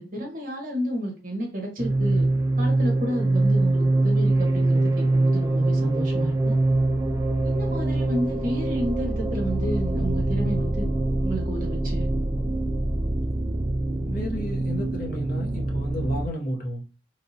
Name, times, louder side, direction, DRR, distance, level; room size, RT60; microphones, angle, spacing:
voice 1, 0.0-2.3 2.6-6.5 7.4-10.9 11.2-12.1, equal, 45° right, 1.0 m, -31 dB
sound 1, 1.8-16.3, right 2 dB, 20° right, 0.3 m, -24 dB
voice 2, 14.1-16.8, equal, 45° left, 0.7 m, -32 dB
2.9 x 2.7 x 2.7 m
head